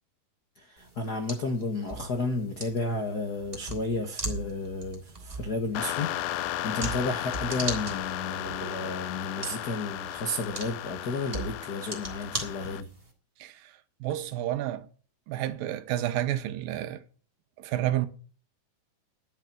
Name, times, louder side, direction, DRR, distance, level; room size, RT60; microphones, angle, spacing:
voice 1, 0.6-12.9, left 2 dB, 65° left, 0.9 m, -32 dB
sound 1, 0.8-13.1, right 2 dB, 15° right, 3.1 m, -40 dB
sound 2, 5.8-12.8, left 14 dB, 85° left, 2.5 m, -35 dB
voice 2, 13.4-13.7 14.0-14.9 15.3-17.0 17.6-18.1, right 13 dB, 90° right, 2.8 m, -30 dB
11.5 x 7.5 x 9.3 m
omnidirectional pair, 4.0 m